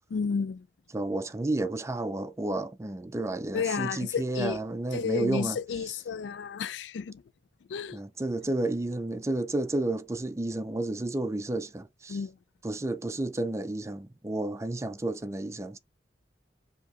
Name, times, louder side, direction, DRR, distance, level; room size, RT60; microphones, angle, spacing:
voice 1, 0.1-0.7 3.5-4.6 4.9-7.2 7.7-8.0 12.1-12.4, left 6 dB, 85° left, 0.4 m, -31 dB
voice 2, 0.9-5.6 7.9-12.2 12.6-15.8, right 2 dB, 15° right, 0.4 m, -31 dB
4.8 x 2.9 x 3.7 m
head